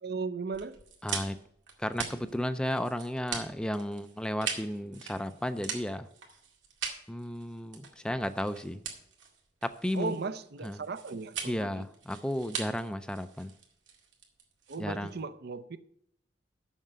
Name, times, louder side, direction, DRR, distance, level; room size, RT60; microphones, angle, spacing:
voice 1, 0.0-0.8 9.9-11.7 14.7-15.8, right 4 dB, 60° right, 0.6 m, -36 dB
sound 1, 0.5-15.2, right 6 dB, 85° right, 2.0 m, -41 dB
voice 2, 1.0-1.4 1.8-6.1 7.1-8.8 9.6-10.1 10.6-10.8 11.5-13.5 14.8-15.1, equal, 5° left, 0.4 m, -33 dB
7.3 x 6.5 x 7.9 m
head